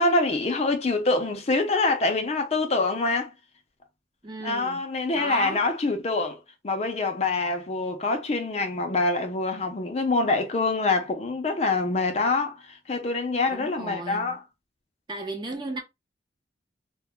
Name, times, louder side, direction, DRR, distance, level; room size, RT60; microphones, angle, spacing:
voice 1, 0.0-3.3 4.4-6.4 6.6-14.4, left 3 dB, 35° left, 0.4 m, -25 dB
voice 2, 4.2-4.9 5.1-5.6 13.5-14.4 15.1-15.8, right 2 dB, 25° right, 0.5 m, -35 dB
2.2 x 2.1 x 3.5 m
head